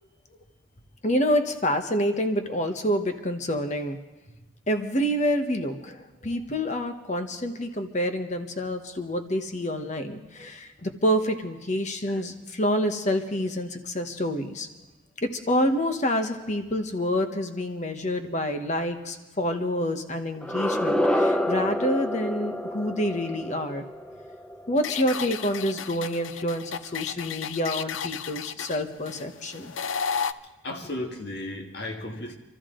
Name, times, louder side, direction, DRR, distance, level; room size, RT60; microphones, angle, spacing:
voice 1, 1.0-4.0 4.7-14.7 15.2-23.9 24.7-29.7, equal, 40° left, 7 dB, 1.2 m, -27 dB
sound 1, 20.4-25.3, left 1 dB, 5° left, 0.6 m, -28 dB
sound 2, 24.8-30.3, left 7 dB, 85° left, 0.5 m, -33 dB
voice 2, 30.6-32.4, left 1 dB, 60° left, 3 dB, 1.7 m, -35 dB
26.0 x 13.5 x 3.8 m, 1.1 s
head